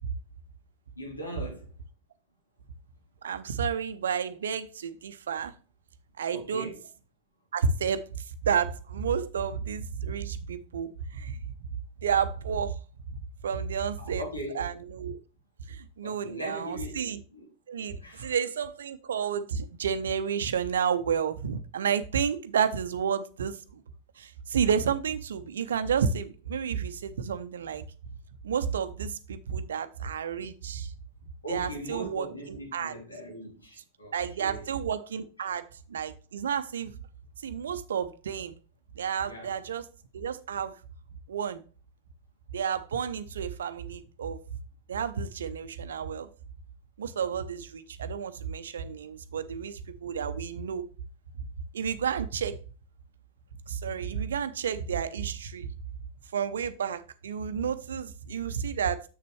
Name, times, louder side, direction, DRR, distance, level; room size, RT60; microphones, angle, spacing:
voice 1, 0.9-1.7 6.3-6.9 14.0-14.7 16.0-17.5 18.0-18.3 31.4-34.7 35.4-35.5 39.2-39.6, equal, 80° left, 3.3 m, -40 dB
voice 2, 3.2-5.5 6.2-6.7 7.5-8.0 8.4-11.4 12.0-12.8 13.1-13.2 13.4-14.2 14.5-15.2 15.7-17.2 17.7-23.8 24.2-27.8 28.4-30.9 31.5-32.3 32.7-32.9 34.1-36.9 37.4-38.6 39.0-39.8 40.1-40.8 41.3-41.6 42.5-44.4 44.9-46.3 47.0-50.8 51.7-52.6 53.7-55.7 56.3-59.0, right 7 dB, 65° right, 0.7 m, -31 dB
7.6 x 6.7 x 3.2 m
figure-of-eight pair, 90°, 0 cm